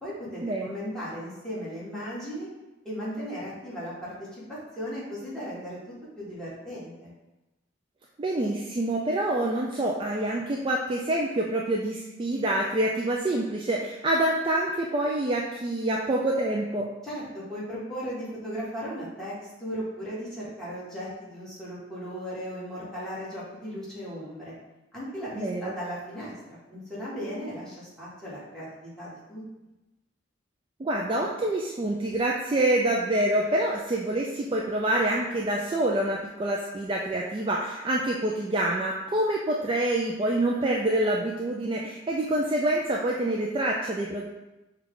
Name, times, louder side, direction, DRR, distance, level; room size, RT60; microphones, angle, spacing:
voice 1, 0.0-2.5 2.8-7.1 17.0-19.3 19.6-24.5 24.9-26.3 26.7-29.4, equal, 5° left, -10 dB, 1.5 m, -36 dB
voice 2, 8.2-16.9 25.3-25.7 30.8-44.3, right 1 dB, 25° right, -2 dB, 0.3 m, -26 dB
6.0 x 2.3 x 3.7 m, 1.0 s
head